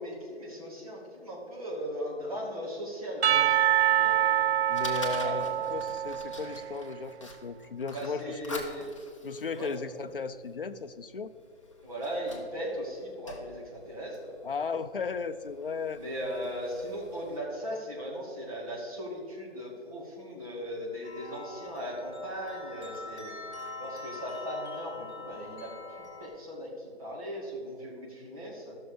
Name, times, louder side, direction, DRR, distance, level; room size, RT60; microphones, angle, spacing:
voice 1, 0.0-3.3 3.9-4.2 5.2-5.3 7.9-8.9 9.5-9.7 11.8-14.3 16.0-23.3 23.8-28.8, equal, 30° right, -4 dB, 2.3 m, -38 dB
Percussion / Church bell, 3.2-6.9, right 11 dB, 70° right, 0.6 m, -26 dB
Fire, 3.9-17.4, left 2 dB, 30° left, 0.8 m, -48 dB
voice 2, 4.7-8.6 9.2-11.3 14.4-16.0, left 5 dB, 55° left, 10 dB, 0.6 m, -35 dB
sound 1, 21.0-26.3, left 3 dB, 5° right, 1.0 m, -43 dB
14.0 x 6.3 x 5.0 m, 2.2 s
hypercardioid pair, 180°, 34 cm